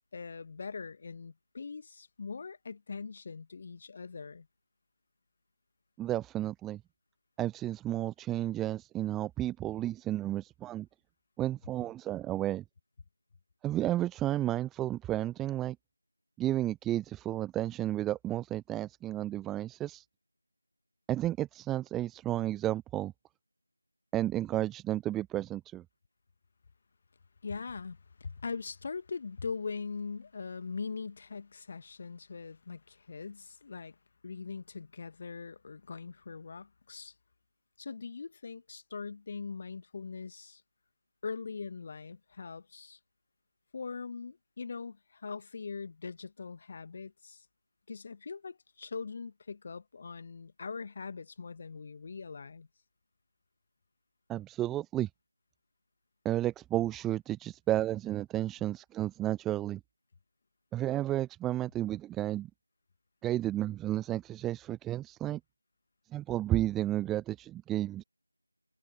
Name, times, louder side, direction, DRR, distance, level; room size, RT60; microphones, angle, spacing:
voice 1, 0.1-4.5 27.4-34.0 34.2-37.1 37.8-40.6 41.2-43.0 43.7-47.5 47.9-52.7, left 5 dB, 25° left, 1.9 m, -41 dB
voice 2, 6.0-6.8 7.4-10.9 11.4-12.6 13.6-15.8 16.4-20.1 21.1-23.1 24.1-25.8 54.3-55.1 56.2-59.8 60.7-62.5 63.2-65.4 66.1-68.0, right 13 dB, 5° right, 0.3 m, -32 dB
figure-of-eight pair, 165°, 0 cm